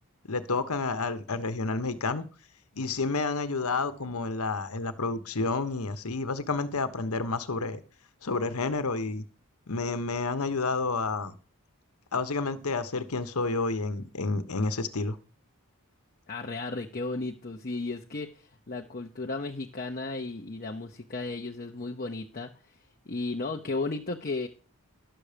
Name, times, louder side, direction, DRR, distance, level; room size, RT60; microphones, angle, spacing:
voice 1, 0.3-2.2 2.7-7.8 8.2-9.2 9.7-11.3 12.1-15.2, left 3 dB, 75° left, 1.1 m, -30 dB
voice 2, 16.3-22.5 23.1-24.5, left 3 dB, 40° left, 0.8 m, -34 dB
11.0 x 6.9 x 5.1 m
head